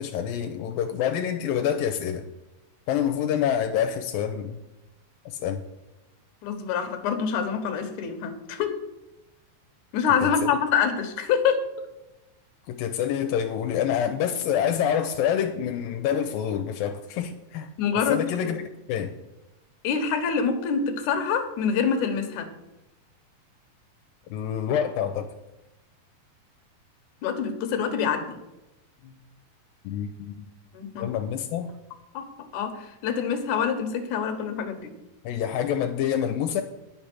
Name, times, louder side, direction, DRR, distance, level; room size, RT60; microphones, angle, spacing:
voice 1, 0.0-2.2 2.9-4.6 5.3-5.6 10.2-10.5 12.7-17.7 18.1-18.6 18.9-19.1 24.3-25.3 29.8-30.5 31.0-31.7 35.2-36.6, left 9 dB, 85° left, 6 dB, 2.4 m, -27 dB
voice 2, 6.4-8.8 9.9-11.7 17.8-18.6 19.8-22.5 27.2-28.3 30.7-31.1 32.1-32.2 32.5-34.9, left 6 dB, 65° left, 7 dB, 2.6 m, -26 dB
10.5 x 7.3 x 6.1 m, 1.0 s
omnidirectional pair, 4.2 m